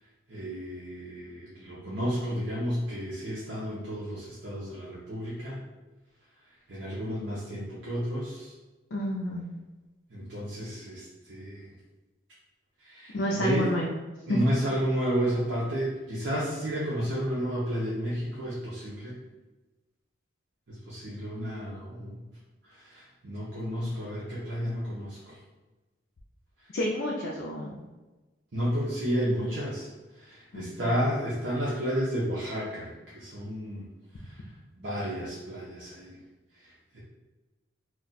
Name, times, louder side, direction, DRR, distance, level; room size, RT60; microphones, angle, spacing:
voice 1, 0.3-5.6 6.7-8.5 10.1-11.7 12.8-13.7 14.3-19.1 20.7-22.2 22.8-25.3 28.5-29.9 30.2-33.8 34.8-36.2 36.9-37.0, equal, 75° right, -8 dB, 0.7 m, -31 dB
voice 2, 8.9-9.5 13.1-13.9 14.3-14.4 26.7-27.8 30.5-31.0, left 1 dB, 80° left, -3 dB, 0.4 m, -30 dB
2.4 x 2.2 x 4.0 m, 1.2 s
head